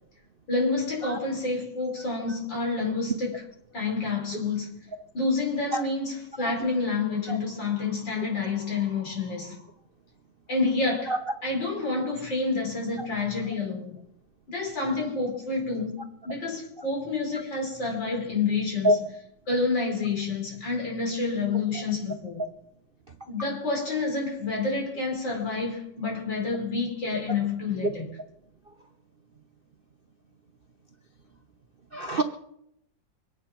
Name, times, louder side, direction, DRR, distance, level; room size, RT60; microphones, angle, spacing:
voice 1, 0.5-3.4 3.7-4.8 5.1-9.6 10.5-11.1 11.4-14.0 14.5-19.0 19.5-22.4 23.3-28.1, left 3 dB, 75° left, 5.9 m, -28 dB
voice 2, 31.9-32.2, right 1 dB, 40° right, 0.8 m, -25 dB
24.5 x 9.6 x 6.0 m
omnidirectional pair, 2.1 m